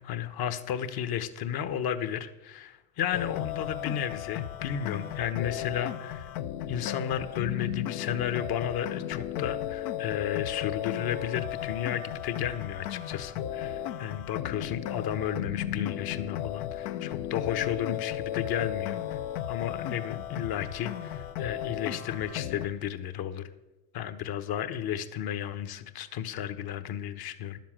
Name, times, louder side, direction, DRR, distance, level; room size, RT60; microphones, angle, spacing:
voice 1, 0.0-6.3 6.7-19.0 19.5-23.4 23.9-27.6, left 9 dB, 50° left, 11 dB, 1.2 m, -33 dB
sound 1, 3.1-22.7, left 11 dB, 70° left, 0.8 m, -35 dB
11.5 x 7.5 x 7.5 m, 1.0 s
supercardioid pair, 85°, 46 cm